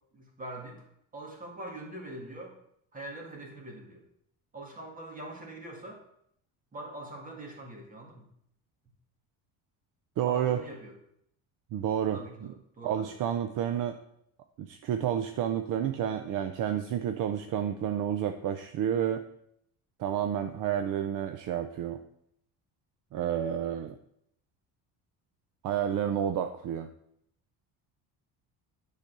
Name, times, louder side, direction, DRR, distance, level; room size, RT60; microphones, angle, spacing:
voice 1, 0.1-0.8 1.1-2.6 2.9-4.0 4.5-6.0 6.7-8.3 10.3-10.9 12.1-13.1, right 1 dB, 20° right, 1 dB, 1.9 m, -43 dB
voice 2, 10.2-10.6 11.7-12.2 12.8-14.0 14.6-19.3 20.0-22.0 23.1-24.0 25.6-26.9, right 9 dB, 55° right, 8 dB, 0.6 m, -30 dB
10.5 x 4.1 x 6.7 m, 0.73 s
cardioid pair, 155°, 39 cm